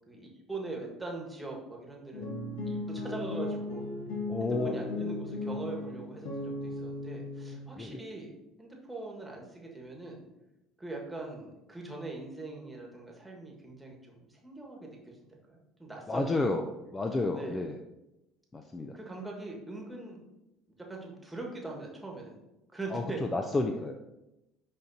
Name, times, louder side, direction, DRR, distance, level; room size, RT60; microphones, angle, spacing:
voice 1, 0.1-2.3 2.6-3.8 4.4-10.2 10.8-16.4 17.3-17.6 18.9-20.2 20.8-22.3 22.7-23.2, right 2 dB, 10° right, -1 dB, 1.6 m, -42 dB
sound 1, 2.1-7.6, left 2 dB, 65° left, 1.3 m, -36 dB
voice 2, 4.3-4.7 7.8-8.0 16.1-17.8 18.5-19.0 22.9-23.9, left 2 dB, 20° left, 5 dB, 0.5 m, -31 dB
11.0 x 3.7 x 2.7 m, 0.94 s
figure-of-eight pair, 60°, 0 cm